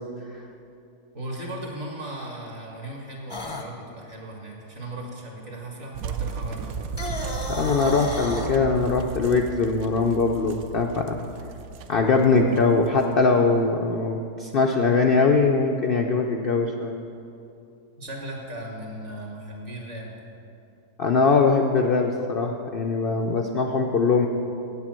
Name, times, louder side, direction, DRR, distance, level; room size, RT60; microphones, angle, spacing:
voice 1, 1.1-6.9 18.0-20.1, right 1 dB, 45° right, -1 dB, 2.0 m, -37 dB
sound 1, 3.3-3.7 6.8-8.5, left 2 dB, 25° left, 0.5 m, -32 dB
sound 2, 5.9-13.6, right 6 dB, 70° right, 1.0 m, -35 dB
voice 2, 7.5-11.3 11.9-17.0 21.0-24.3, left 4 dB, 85° left, 2 dB, 0.5 m, -21 dB
8.4 x 8.0 x 7.5 m, 2.6 s
omnidirectional pair, 1.7 m